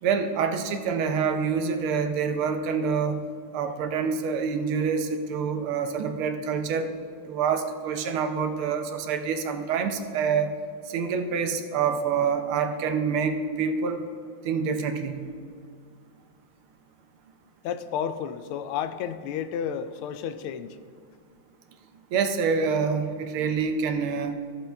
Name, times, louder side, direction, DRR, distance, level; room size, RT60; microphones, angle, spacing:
voice 1, 0.0-3.2 3.5-6.9 7.3-10.5 10.9-14.0 14.4-15.3 22.1-24.3, right 6 dB, 80° right, 7 dB, 1.6 m, -26 dB
voice 2, 17.6-20.8, left 8 dB, 85° left, 11 dB, 1.5 m, -31 dB
14.5 x 6.9 x 3.4 m, 2.2 s
omnidirectional pair, 2.3 m